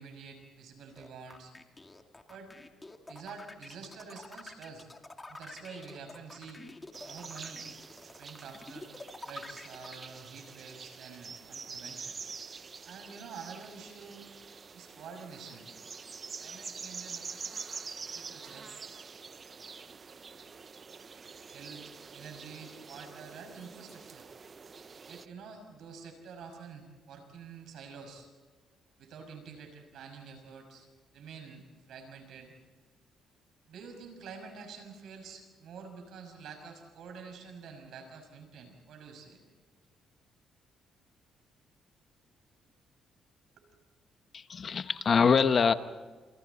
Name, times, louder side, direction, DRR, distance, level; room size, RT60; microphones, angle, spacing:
voice 1, 0.0-1.5 2.3-2.5 3.0-4.9 5.3-6.6 7.1-7.7 8.0-8.9 9.2-12.2 12.8-14.3 14.7-15.7 16.4-17.6 18.0-18.7 21.5-24.3 25.1-28.3 29.0-30.9 31.1-32.5 33.7-39.4 43.6-43.7, right 5 dB, 75° right, 5 dB, 6.2 m, -48 dB
sound 1, 1.0-10.0, left 2 dB, 20° left, 2.3 m, -47 dB
sound 2, 6.9-25.3, right 5 dB, 40° right, 0.7 m, -46 dB
voice 2, 44.3-45.7, left 6 dB, 45° left, 11 dB, 1.1 m, -24 dB
28.5 x 28.0 x 4.2 m, 1.4 s
cardioid pair, 90°, 0 cm